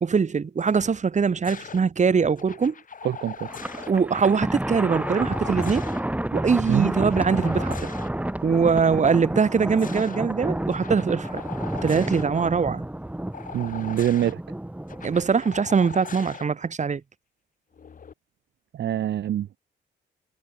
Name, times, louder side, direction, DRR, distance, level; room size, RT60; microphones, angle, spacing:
voice 1, 0.0-2.7 3.9-5.8 6.3-7.9 8.4-11.4 11.8-12.8 15.0-17.0, right 5 dB, 35° right, 2.9 m, -22 dB
sound 1, 1.4-1.8 2.4-3.9 5.0-6.0 6.5-8.1 9.4-10.2 10.7-12.2 13.3-14.3 14.9-16.4 17.7-18.1, left 6 dB, 45° left, 3.1 m, -40 dB
voice 2, 3.0-3.5 6.7-6.9 13.5-14.4 18.7-19.6, right 11 dB, 60° right, 1.0 m, -25 dB
Thunder, 3.5-15.2, right 1 dB, 5° right, 7.6 m, -30 dB
cardioid pair, 90°, 20 cm